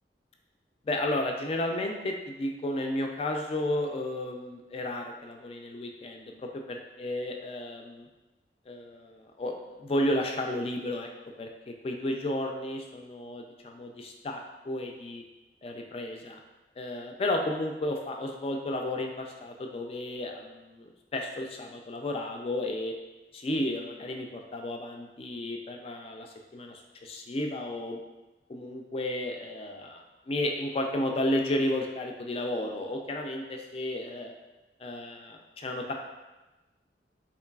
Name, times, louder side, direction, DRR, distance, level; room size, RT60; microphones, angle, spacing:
voice 1, 0.9-8.1 8.7-11.1 11.4-15.2 15.6-16.4 16.8-22.9 23.3-28.0 28.5-34.3 34.8-35.9, left 1 dB, 35° left, 3 dB, 0.3 m, -33 dB
3.8 x 3.1 x 2.3 m, 1.1 s
head